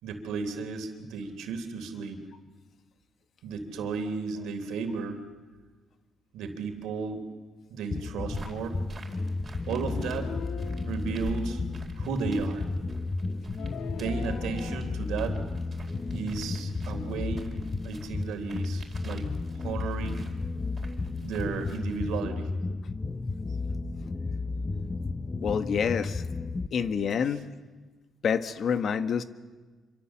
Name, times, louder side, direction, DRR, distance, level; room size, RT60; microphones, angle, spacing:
voice 1, 0.0-2.2 3.4-5.2 6.3-7.2 7.7-8.8 9.7-10.3 10.8-11.6 12.0-12.6 14.0-15.4 16.1-17.5 17.8-19.3 19.5-20.3 21.2-22.5, right 5 dB, 85° right, 7 dB, 3.5 m, -34 dB
sound 1, 7.9-26.7, left 3 dB, 25° left, 0.9 m, -33 dB
sound 2, 8.3-22.2, right 4 dB, 35° right, 4.5 m, -49 dB
sound 3, 9.7-11.0 13.6-14.8, left 7 dB, 75° left, 2.0 m, -41 dB
voice 2, 25.4-26.2 26.7-27.5 28.2-29.2, left 7 dB, 60° left, 10 dB, 1.5 m, -27 dB
26.5 x 25.0 x 7.5 m, 1.3 s
cardioid pair, 90°, 0 cm